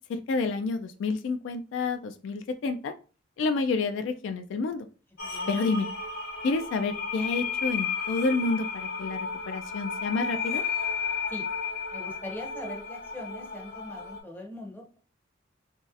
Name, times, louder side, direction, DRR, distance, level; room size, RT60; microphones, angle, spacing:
voice 1, 0.1-2.9 3.4-4.9 5.5-5.9 6.4-9.2 9.5-10.6, left 3 dB, 70° left, 7 dB, 0.3 m, -29 dB
sound 1, 5.2-14.2, left 5 dB, 55° left, 1.1 m, -33 dB
voice 2, 5.2-5.6 11.3-11.4 11.9-15.0, left 1 dB, 10° left, 2 dB, 0.6 m, -41 dB
2.9 x 2.7 x 2.4 m, 0.36 s
head